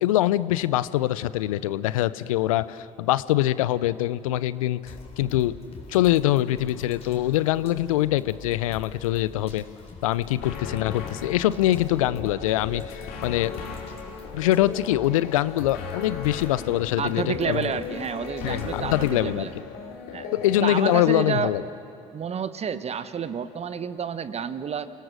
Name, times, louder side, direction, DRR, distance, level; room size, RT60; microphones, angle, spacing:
voice 1, 0.0-5.5 5.9-9.6 10.0-13.5 14.3-17.7 18.4-19.5 20.3-21.6, left 14 dB, 80° left, 17 dB, 0.6 m, -24 dB
sound 1, 4.8-19.0, left 3 dB, 35° left, 3.6 m, -45 dB
sound 2, 10.4-21.1, left 5 dB, 65° left, 3.1 m, -37 dB
voice 2, 17.0-19.5 20.1-20.3 20.6-21.5 22.1-24.9, right 7 dB, 40° right, 13 dB, 1.1 m, -29 dB
30.0 x 18.0 x 6.3 m, 2.5 s
hypercardioid pair, 55°, 17 cm